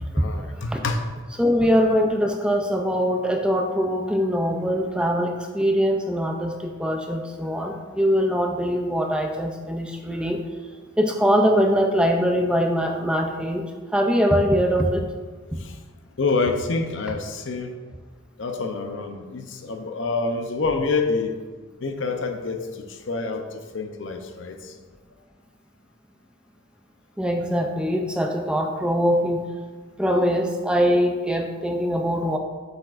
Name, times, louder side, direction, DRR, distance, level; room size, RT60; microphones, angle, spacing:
voice 1, 0.1-1.0 15.6-15.8 16.2-17.7 18.4-21.4 21.8-24.7, left 3 dB, 65° left, 5 dB, 0.7 m, -27 dB
voice 2, 1.4-10.4 11.0-13.6 13.9-15.0 27.2-29.4 30.0-32.4, equal, 5° right, 3 dB, 0.4 m, -22 dB
7.7 x 6.9 x 2.5 m, 1.5 s
head